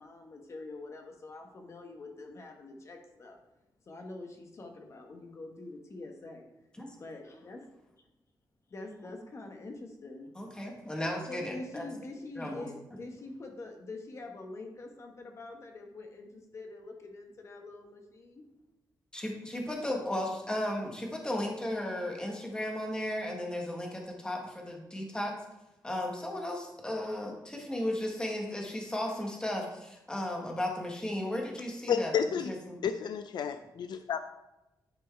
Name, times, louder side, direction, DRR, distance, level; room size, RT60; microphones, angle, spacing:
voice 1, 0.0-3.4 3.9-6.4 7.0-7.7 8.0-8.1 8.7-10.3 11.3-18.5, left 2 dB, 40° left, 3 dB, 1.1 m, -45 dB
voice 2, 10.4-11.8 12.4-12.6 19.1-25.3 25.8-32.2 32.4-32.8, left 1 dB, 10° left, 0 dB, 1.3 m, -35 dB
voice 3, 31.9-32.5 32.8-34.2, left 7 dB, 70° left, 9 dB, 0.4 m, -31 dB
10.0 x 4.5 x 4.5 m, 0.95 s
wide cardioid pair, 170°, 8 cm